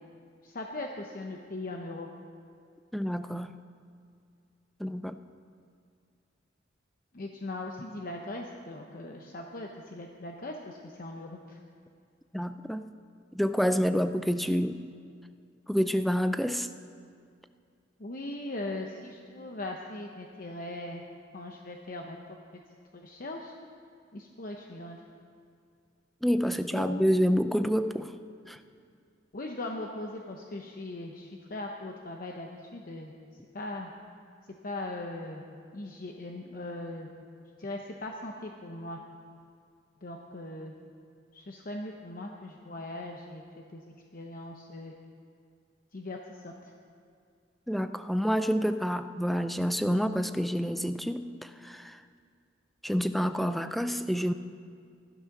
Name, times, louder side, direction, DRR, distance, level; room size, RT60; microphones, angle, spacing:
voice 1, 0.4-2.1 7.1-11.6 18.0-21.0 21.3-22.4 22.9-23.5 24.1-25.0 26.7-27.2 29.3-33.1 33.5-33.9 34.6-35.4 35.7-37.1 37.6-39.0 40.0-40.7 41.3-43.8 44.1-44.9 45.9-46.7, left 2 dB, 50° left, 2 dB, 0.9 m, -39 dB
voice 2, 2.9-3.5 4.8-5.2 12.3-12.8 13.3-14.8 15.7-16.7 26.2-28.1 28.5-28.6 47.7-52.0 52.8-54.3, equal, ahead, 10 dB, 0.4 m, -28 dB
14.0 x 12.0 x 6.0 m, 2.3 s
head